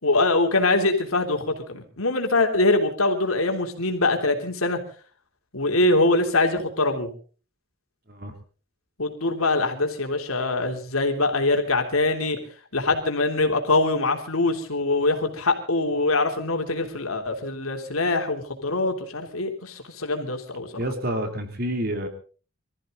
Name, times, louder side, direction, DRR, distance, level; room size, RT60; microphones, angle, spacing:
voice 1, 0.0-4.8 5.5-7.1 9.0-12.4 12.7-20.7, left 2 dB, 90° left, 4 dB, 3.3 m, -23 dB
voice 2, 20.7-22.1, right 1 dB, 45° right, 6 dB, 2.9 m, -28 dB
24.0 x 14.5 x 3.9 m, 0.38 s
head